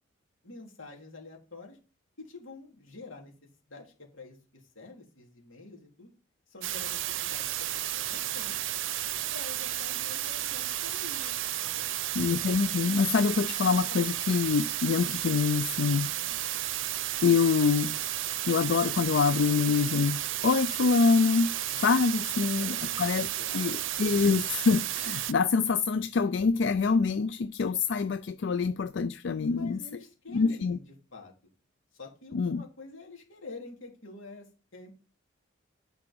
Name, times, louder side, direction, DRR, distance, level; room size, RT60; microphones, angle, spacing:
voice 1, 0.4-1.8 2.2-3.3 3.7-6.1 6.5-8.6 9.3-11.9 16.2-16.4 21.7-22.0 22.3-24.1 29.4-30.8 31.1-31.3 31.9-34.9, left 3 dB, 85° left, 3.1 m, -48 dB
sound 1, 6.6-25.3, right 13 dB, 75° right, 0.6 m, -33 dB
voice 2, 12.2-16.4 17.2-18.0 18.5-23.3 23.5-29.8 30.3-30.8 32.3-32.6, left 5 dB, 60° left, 0.4 m, -26 dB
9.8 x 5.0 x 5.3 m
head